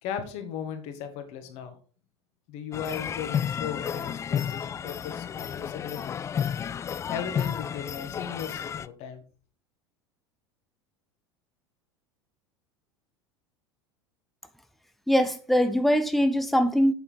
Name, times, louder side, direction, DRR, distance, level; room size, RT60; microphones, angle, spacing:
voice 1, 0.0-1.8 2.5-6.2 7.1-9.2, left 8 dB, 50° left, 1.9 m, -37 dB
sound 1, 2.7-8.9, left 8 dB, 20° left, 0.4 m, -32 dB
voice 2, 15.1-16.9, equal, ahead, 0.9 m, -22 dB
8.4 x 6.6 x 4.2 m
figure-of-eight pair, 80°, 14 cm